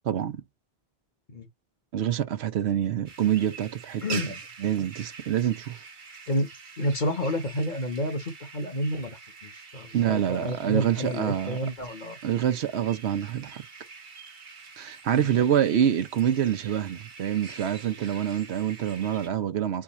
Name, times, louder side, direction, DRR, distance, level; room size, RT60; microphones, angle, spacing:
voice 1, 0.0-0.4 1.9-4.2 4.6-5.8 9.9-11.6 12.2-13.6 14.8-19.8, right 10 dB, 80° right, 1.0 m, -26 dB
sound 1, 3.0-19.3, right 5 dB, 50° right, 1.1 m, -45 dB
voice 2, 4.0-4.4 6.3-6.5 6.8-12.2 15.2-15.3, equal, 45° left, 1.1 m, -30 dB
4.7 x 2.4 x 4.1 m
omnidirectional pair, 1.1 m